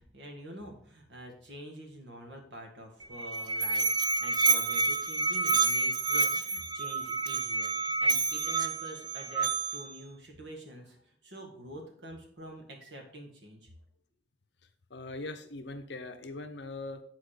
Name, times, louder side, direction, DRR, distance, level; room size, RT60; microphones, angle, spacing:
voice 1, 0.0-13.7, right 1 dB, 65° right, 2 dB, 1.8 m, -47 dB
Musical instrument, 3.0-10.0, right 4 dB, 20° right, 0.4 m, -29 dB
voice 2, 14.9-17.0, left 2 dB, 60° left, 8 dB, 0.7 m, -41 dB
8.9 x 4.3 x 4.9 m, 0.62 s
head